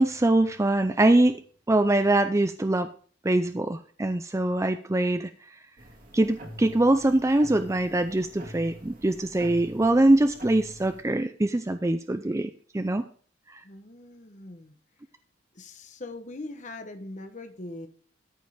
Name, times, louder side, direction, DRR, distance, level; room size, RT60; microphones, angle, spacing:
voice 1, 0.0-1.4 1.7-2.9 3.2-5.3 6.1-13.1 13.5-13.6, right 1 dB, 15° right, 9 dB, 0.4 m, -23 dB
sound 1, 5.8-11.0, equal, 50° right, 2.2 m, -45 dB
voice 2, 13.6-14.7 15.5-17.9, left 2 dB, 40° left, 6 dB, 1.0 m, -41 dB
13.5 x 5.4 x 4.9 m, 0.43 s
head